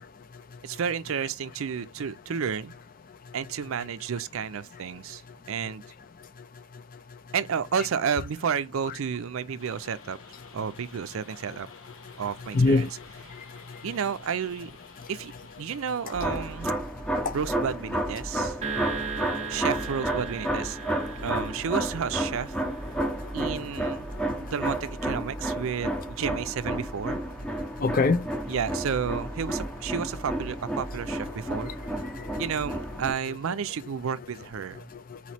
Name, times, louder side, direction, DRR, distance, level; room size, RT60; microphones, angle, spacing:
voice 1, 0.6-2.7 3.3-5.2 5.5-5.8 7.3-10.2 10.5-11.7 12.2-12.9 13.8-14.7 15.1-15.3 15.6-16.8 17.3-18.6 19.5-20.8 21.2-22.6 23.3-24.1 24.4-27.2 28.5-31.7 32.4-34.9, right 7 dB, 65° right, 0.4 m, -31 dB
sound 1, 9.6-16.8, left 4 dB, 70° left, 1.0 m, -51 dB
voice 2, 12.5-12.9 13.7-13.8 16.1-16.3 17.3-17.4 23.8-23.9 27.8-28.3 31.4-31.7 32.0-32.8 33.1-33.4 34.9-35.3, left 3 dB, 40° left, 0.4 m, -27 dB
sound 2, 16.1-33.1, right 1 dB, 5° left, 0.7 m, -31 dB
sound 3, 18.6-23.1, right 5 dB, 30° right, 0.7 m, -37 dB
4.2 x 3.1 x 4.1 m
head